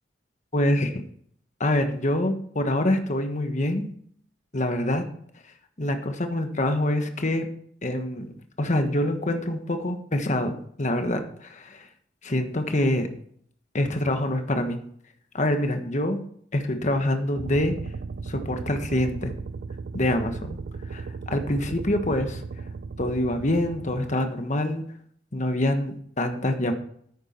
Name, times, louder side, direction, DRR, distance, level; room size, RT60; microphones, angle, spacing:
voice 1, 0.5-1.0 1.6-3.9 4.5-5.0 5.8-7.5 7.8-8.3 8.6-11.9 12.2-13.1 13.7-14.8 15.3-16.2 16.5-17.7 18.2-19.3 19.9-20.6 20.9-22.4 23.0-24.8 25.3-26.7, left 1 dB, 40° left, 6 dB, 1.3 m, -25 dB
sound 1, 17.3-24.1, right 4 dB, 55° right, 0.4 m, -36 dB
9.8 x 9.1 x 4.5 m, 0.62 s
head